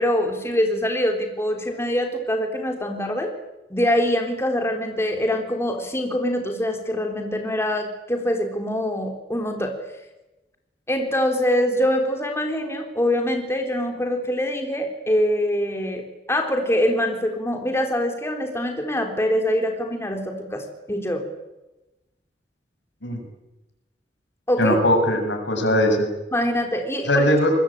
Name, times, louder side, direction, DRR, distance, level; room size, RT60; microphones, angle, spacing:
voice 1, 0.0-3.3 3.7-9.8 10.9-21.2 24.5-24.8 26.3-27.3, equal, 15° left, 4 dB, 3.7 m, -24 dB
voice 2, 24.6-26.1 27.1-27.5, left 1 dB, 85° left, 4 dB, 7.5 m, -20 dB
27.5 x 21.5 x 8.9 m, 1.0 s
head